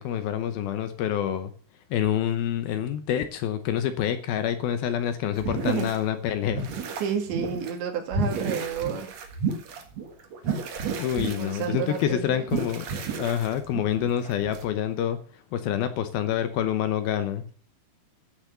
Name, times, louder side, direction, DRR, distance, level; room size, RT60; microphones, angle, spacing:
voice 1, 0.0-1.5 1.9-6.7 11.0-12.9 13.2-15.2 15.5-17.4, left 10 dB, 75° left, 10 dB, 2.4 m, -27 dB
sound 1, 5.4-6.0 6.4-7.7 8.1-14.6, right 4 dB, 55° right, 2.1 m, -32 dB
voice 2, 5.5-5.9 7.0-9.1 11.2-12.4, right 7 dB, 85° right, 3 dB, 4.6 m, -31 dB
13.0 x 7.1 x 6.7 m, 0.42 s
omnidirectional pair, 5.0 m